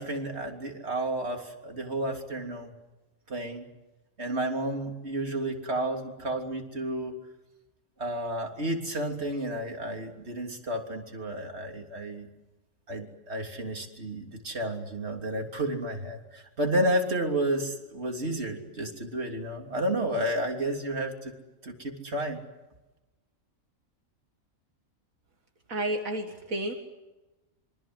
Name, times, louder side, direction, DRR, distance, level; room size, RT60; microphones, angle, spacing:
voice 1, 0.0-2.7 3.3-3.6 4.2-7.2 8.0-12.3 12.9-21.3 21.6-22.4, right 1 dB, 50° right, 3 dB, 3.5 m, -31 dB
voice 2, 25.7-26.7, right 1 dB, 75° right, 4 dB, 2.3 m, -31 dB
26.5 x 24.5 x 8.0 m, 1.0 s
omnidirectional pair, 1.4 m